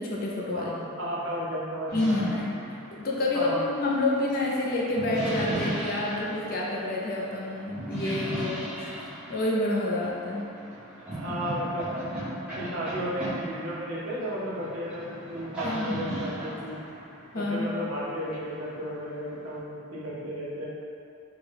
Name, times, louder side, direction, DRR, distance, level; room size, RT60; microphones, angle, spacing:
voice 1, 0.0-0.7 1.9-10.5 15.6-16.1 17.3-17.8, left 2 dB, 40° left, -3 dB, 0.4 m, -29 dB
voice 2, 0.5-2.1 3.3-3.6 11.1-11.9 12.6-16.8 17.3-20.6, equal, 70° right, -7 dB, 0.8 m, -34 dB
sound 1, 1.9-19.6, right 1 dB, 5° right, 0.7 m, -37 dB
3.5 x 2.2 x 3.3 m, 2.5 s
head